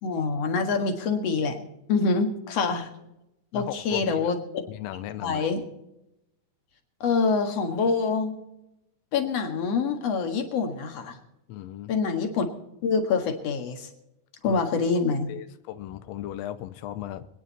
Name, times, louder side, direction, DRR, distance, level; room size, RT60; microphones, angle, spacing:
voice 1, 0.0-1.6 1.9-2.9 3.5-4.4 5.2-5.6 7.0-8.4 9.1-11.2 11.9-12.5 12.8-13.9 14.4-15.3, left 4 dB, 55° left, 5 dB, 2.6 m, -25 dB
voice 2, 3.5-4.3 4.7-5.5 11.5-11.9 14.4-14.6 15.3-17.3, left 13 dB, 85° left, 11 dB, 1.5 m, -36 dB
25.5 x 9.6 x 4.2 m, 0.88 s
omnidirectional pair, 3.8 m